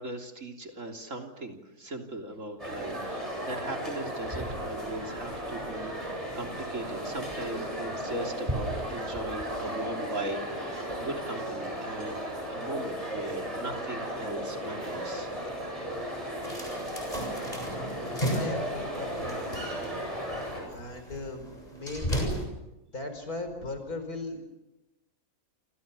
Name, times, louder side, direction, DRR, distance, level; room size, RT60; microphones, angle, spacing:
voice 1, 0.0-15.3 16.2-16.5, right 2 dB, 55° right, 3 dB, 3.7 m, -39 dB
sound 1, 2.6-20.6, equal, 20° right, 8.2 m, -35 dB
sound 2, 16.4-22.4, equal, 25° left, 7.7 m, -35 dB
voice 2, 18.3-19.6 20.7-22.5 22.9-24.4, left 2 dB, 80° left, 7 dB, 5.5 m, -38 dB
28.5 x 28.0 x 7.0 m, 0.96 s
omnidirectional pair, 1.6 m